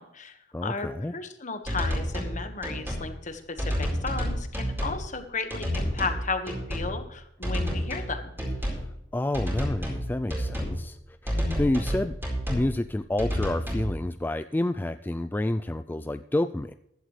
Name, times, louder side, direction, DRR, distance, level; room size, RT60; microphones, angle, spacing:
voice 1, 0.0-8.3, left 4 dB, 45° left, 8 dB, 1.5 m, -34 dB
voice 2, 0.5-1.1 8.7-8.9 9.1-11.0 11.2-12.2 12.5-16.7, left 1 dB, 10° left, 10 dB, 0.3 m, -29 dB
sound 1, 1.7-2.3 2.6-3.1 3.6-5.0 5.5-6.2 6.5-6.9 7.4-8.1 8.4-8.9 9.3-10.0 10.3-10.8 11.3-12.7 13.2-13.9, equal, 15° right, 4.4 m, -29 dB
15.5 x 11.5 x 3.3 m, 0.81 s
head